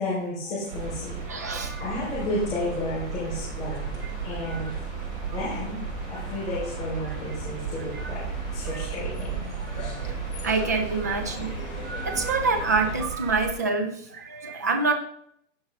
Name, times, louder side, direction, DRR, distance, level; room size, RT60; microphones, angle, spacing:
voice 1, 0.0-1.2 1.5-3.9 4.2-4.7 5.3-5.8 6.1-9.4, left 1 dB, 20° left, -13 dB, 4.4 m, -32 dB
sound 1, 0.7-13.1, left 2 dB, 35° left, 2.9 m, -39 dB
sound 2, 0.7-13.6, right 4 dB, 30° right, 2.9 m, -47 dB
sound 3, 0.7-13.6, right 8 dB, 80° right, 0.9 m, -35 dB
voice 2, 1.3-1.9 4.0-4.1 4.4-4.6 7.9-8.1 8.6-8.9 9.7-14.9, right 4 dB, 15° right, 5 dB, 0.4 m, -27 dB
16.0 x 5.4 x 3.8 m, 0.69 s
hypercardioid pair, 160°, 39 cm